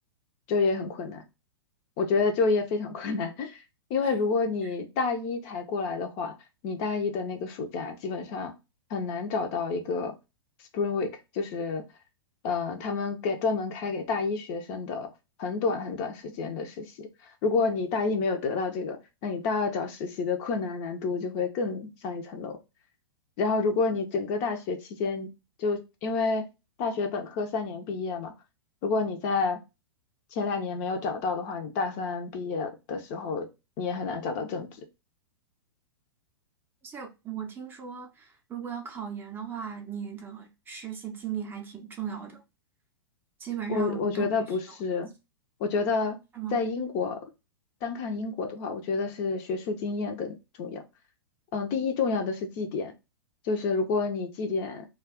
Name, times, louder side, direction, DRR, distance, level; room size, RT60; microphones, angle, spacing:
voice 1, 0.5-1.2 2.0-3.6 3.9-6.3 6.6-8.5 8.9-10.1 10.7-11.8 12.4-15.1 15.4-17.1 17.4-22.6 23.4-25.3 25.6-26.5 26.8-28.3 28.8-29.6 30.3-33.5 33.8-34.7 43.7-45.1 45.6-46.2 46.5-47.3 47.8-50.8 51.5-52.9 53.4-54.9, left 4 dB, 35° left, 0.5 m, -29 dB
voice 2, 36.8-42.4 43.4-44.3 44.7-44.8 46.3-46.6, right 8 dB, 15° right, 0.5 m, -37 dB
2.3 x 2.3 x 3.4 m
figure-of-eight pair, 105°, 13 cm